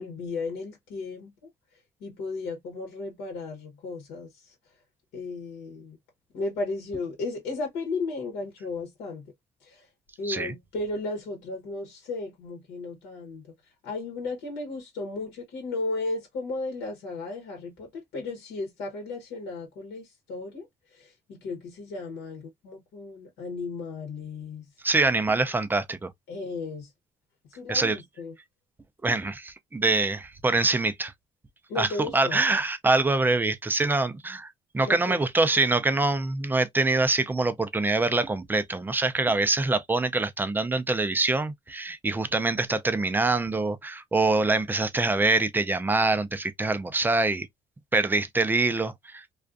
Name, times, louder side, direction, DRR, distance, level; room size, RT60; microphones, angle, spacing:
voice 1, 0.0-1.3 2.0-4.5 5.1-6.0 6.3-9.3 9.6-9.9 10.2-13.5 13.8-24.6 26.3-26.9 27.5-28.4 31.7-32.4 34.8-35.3, left 3 dB, 80° left, 1.0 m, -35 dB
voice 2, 24.8-26.1 27.7-28.0 29.0-31.1 31.8-31.9 32.1-47.5 47.9-49.2, right 3 dB, 10° right, 0.4 m, -25 dB
2.4 x 2.3 x 2.4 m
cardioid pair, 110°, 17 cm